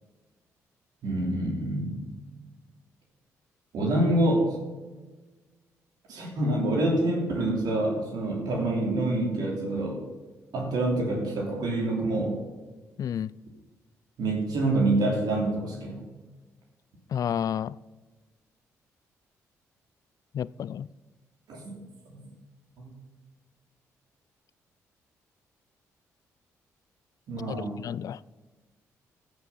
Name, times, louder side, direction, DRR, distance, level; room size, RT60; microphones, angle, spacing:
voice 1, 1.0-2.0 3.7-4.5 6.1-10.0 10.5-12.4 14.2-16.0 21.5-21.7 22.1-22.2 22.8-22.9 27.3-27.8, right 1 dB, 70° right, 3.0 m, -26 dB
voice 2, 13.0-13.3 17.1-17.8 20.3-20.9 27.5-28.2, left 9 dB, 55° left, 0.3 m, -31 dB
14.0 x 6.4 x 5.6 m
supercardioid pair, 50°, 7 cm